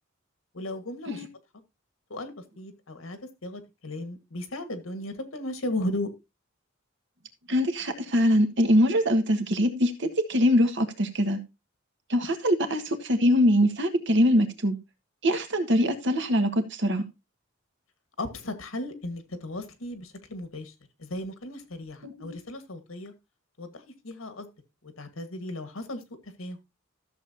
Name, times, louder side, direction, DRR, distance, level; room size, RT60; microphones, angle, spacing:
voice 1, 0.5-1.2 2.1-6.1 18.2-20.7 21.0-23.1 23.6-24.5 24.8-26.6, left 1 dB, 85° left, 1.6 m, -36 dB
voice 2, 7.5-11.4 12.1-14.8 15.2-17.0 22.0-22.4, equal, 65° right, 1.6 m, -23 dB
13.5 x 7.0 x 2.8 m
head